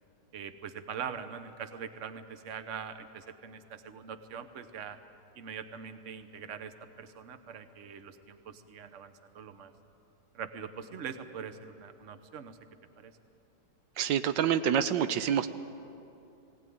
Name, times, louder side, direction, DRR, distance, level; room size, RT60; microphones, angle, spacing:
voice 1, 0.3-5.0 5.4-9.7 10.3-12.6 13.0-13.1, right 7 dB, 50° right, 10 dB, 1.2 m, -43 dB
voice 2, 14.0-15.5, right 9 dB, 85° right, 11 dB, 1.4 m, -27 dB
19.5 x 18.0 x 9.4 m, 2.7 s
omnidirectional pair, 1.9 m